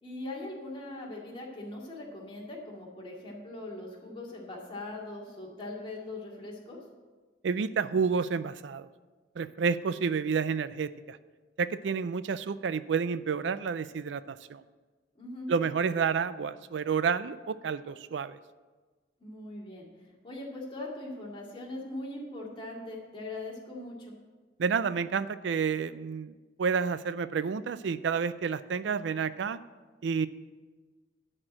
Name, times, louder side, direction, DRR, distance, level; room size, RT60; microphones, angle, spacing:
voice 1, 0.0-6.8 15.1-15.5 19.2-24.1, left 2 dB, 30° left, -3 dB, 2.3 m, -41 dB
voice 2, 7.4-8.9 9.4-11.2 11.6-14.6 15.5-18.4 24.6-26.3 26.6-29.6 30.0-30.3, right 6 dB, 80° right, 15 dB, 0.4 m, -30 dB
11.5 x 4.4 x 7.6 m, 1.3 s
head